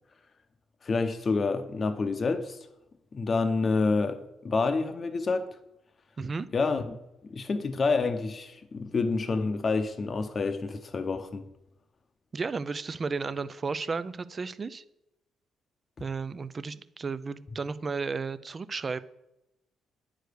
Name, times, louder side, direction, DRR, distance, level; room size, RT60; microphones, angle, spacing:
voice 1, 0.8-2.6 3.1-4.2 4.4-5.5 6.5-7.0 7.3-11.4, left 4 dB, 40° left, 7 dB, 0.8 m, -28 dB
voice 2, 12.3-14.8 16.0-19.0, right 4 dB, 35° right, 15 dB, 0.5 m, -33 dB
9.3 x 5.0 x 6.5 m, 0.88 s
cardioid pair, 90°, 0 cm